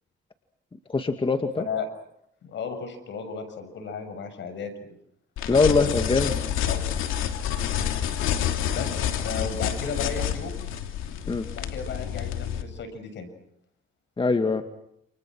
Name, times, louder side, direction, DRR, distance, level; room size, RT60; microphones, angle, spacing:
voice 1, 0.9-1.6 5.5-6.3 11.3-11.5 14.2-14.6, left 4 dB, 25° left, 6 dB, 2.3 m, -22 dB
voice 2, 2.4-4.7 5.7-6.2 6.7-6.8 8.7-10.6 11.5-13.3, left 5 dB, 65° left, 9 dB, 7.0 m, -34 dB
sound 1, 5.4-12.6, left 9 dB, 90° left, 2.9 m, -28 dB
29.5 x 29.0 x 6.4 m, 0.74 s
cardioid pair, 90°, 20 cm